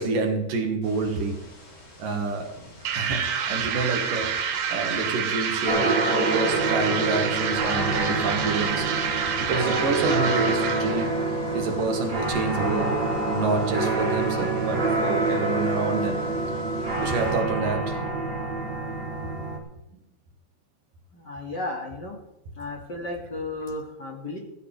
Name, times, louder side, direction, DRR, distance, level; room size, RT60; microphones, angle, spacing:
voice 1, 0.0-1.4 2.0-2.5 3.0-4.4 4.7-9.0 9.4-11.2 11.5-13.0 13.3-16.2 17.0-18.0, right 3 dB, 70° right, 4 dB, 3.4 m, -28 dB
sound 1, 0.8-17.3, left 1 dB, 65° left, 7.9 m, -47 dB
sound 2, 2.8-11.1, right 7 dB, 85° right, 3.4 m, -28 dB
sound 3, 5.7-19.6, right 2 dB, 15° right, 2.7 m, -27 dB
voice 2, 21.1-22.2 22.5-24.4, left 2 dB, 35° left, 0 dB, 2.5 m, -34 dB
16.0 x 15.5 x 3.5 m, 0.91 s
omnidirectional pair, 4.0 m